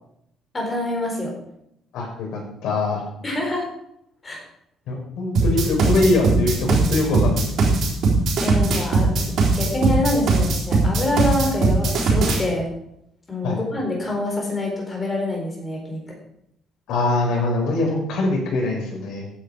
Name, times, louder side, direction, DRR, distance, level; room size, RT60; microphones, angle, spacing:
voice 1, 0.5-1.4 3.2-3.7 4.2-4.4 8.4-12.7 13.3-16.2, left 2 dB, 20° left, 0 dB, 4.0 m, -26 dB
voice 2, 1.9-3.0 4.9-7.8 13.4-13.6 16.9-19.3, left 2 dB, 70° left, 0 dB, 5.2 m, -23 dB
sound 1, 5.3-12.4, right 3 dB, 50° right, 4.0 m, -19 dB
15.5 x 9.5 x 5.0 m, 0.77 s
cardioid pair, 180°, 0 cm